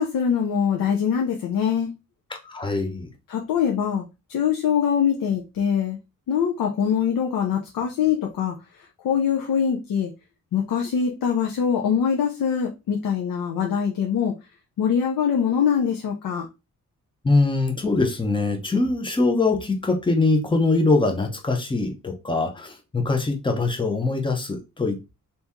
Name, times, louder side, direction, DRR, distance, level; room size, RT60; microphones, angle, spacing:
voice 1, 0.0-1.9 3.3-4.0 4.3-6.0 6.3-8.5 9.0-10.1 10.5-14.3 14.8-16.5, left 7 dB, 85° left, 2 dB, 0.7 m, -23 dB
voice 2, 2.3-3.1 17.2-25.1, left 3 dB, 15° left, 4 dB, 0.7 m, -23 dB
2.8 x 2.8 x 3.5 m, 0.26 s
wide cardioid pair, 145°, 33 cm